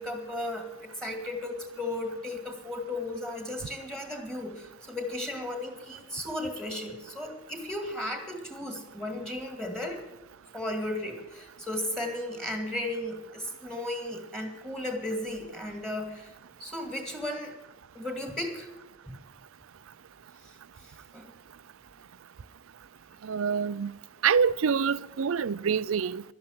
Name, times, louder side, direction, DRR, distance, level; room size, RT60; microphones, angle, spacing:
voice 1, 0.0-10.0 10.5-16.3 16.6-17.5 17.9-18.7 19.1-19.2 20.4-20.5 20.8-21.3, left 1 dB, 5° left, 2.1 m, -35 dB
voice 2, 23.2-23.9 24.2-26.2, right 6 dB, 80° right, 0.5 m, -26 dB
12.0 x 11.0 x 7.8 m
head